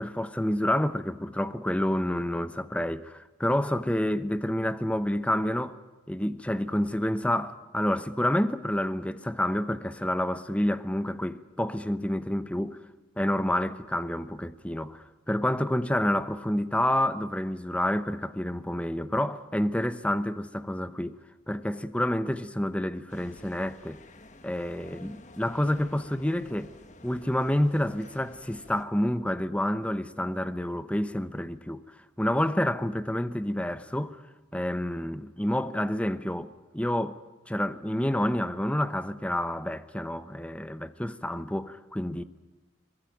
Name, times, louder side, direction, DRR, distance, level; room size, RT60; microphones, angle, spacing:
voice 1, 0.0-5.8 6.1-12.8 13.2-21.2 21.5-24.0 24.4-26.7 27.0-31.8 32.2-34.2 34.5-37.2 37.5-42.2, left 1 dB, 5° left, 0.9 m, -28 dB
sound 1, 23.1-28.8, left 2 dB, 40° left, 1.6 m, -51 dB
23.5 x 21.5 x 9.3 m
head